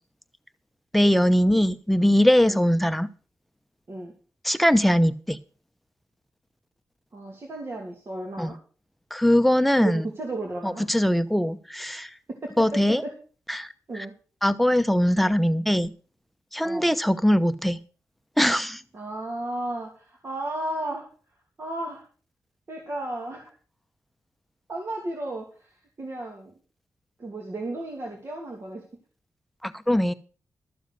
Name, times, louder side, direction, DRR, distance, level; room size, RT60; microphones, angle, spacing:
voice 1, 0.9-3.1 4.4-5.4 8.4-8.5 9.1-10.1 10.6-12.1 12.6-13.0 13.5-13.7 14.4-15.9 16.5-17.8 18.4-18.8 29.6-30.1, equal, ahead, 11 dB, 0.9 m, -21 dB
voice 2, 7.1-8.6 9.8-10.8 12.4-13.1 13.9-14.1 16.6-16.9 18.9-21.1 21.6-22.0 22.7-23.5 24.7-26.5 27.2-28.8, right 1 dB, 45° right, 1 dB, 2.6 m, -34 dB
13.0 x 7.4 x 6.6 m, 0.39 s
cardioid pair, 80°, 6 cm